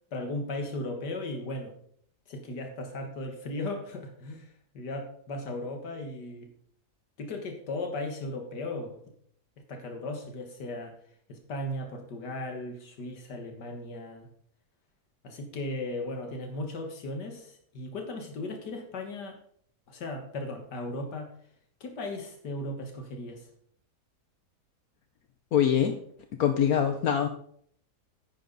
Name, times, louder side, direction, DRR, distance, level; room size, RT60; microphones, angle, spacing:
voice 1, 0.1-1.7 2.3-6.5 7.2-9.0 9.7-11.0 11.3-14.3 15.2-19.4 19.9-21.3 21.8-23.5, left 2 dB, 85° left, 4 dB, 2.1 m, -36 dB
voice 2, 25.5-26.0 26.4-27.3, left 9 dB, 65° left, 7 dB, 1.2 m, -23 dB
11.0 x 9.2 x 4.0 m, 0.64 s
omnidirectional pair, 1.8 m